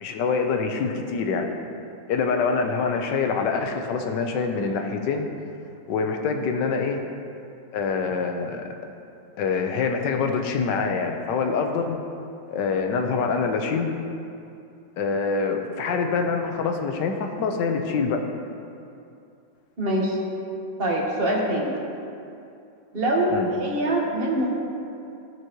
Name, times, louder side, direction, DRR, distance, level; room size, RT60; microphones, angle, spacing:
voice 1, 0.0-1.5 2.1-5.3 5.9-7.0 7.7-8.7 9.4-12.0 12.5-13.9 15.0-18.2 23.3-23.5, left 5 dB, 75° left, 4 dB, 1.4 m, -25 dB
voice 2, 19.8-20.2 20.8-21.8 22.9-24.5, right 1 dB, 35° right, -3 dB, 1.5 m, -24 dB
16.0 x 6.2 x 3.0 m, 2.6 s
omnidirectional pair, 2.0 m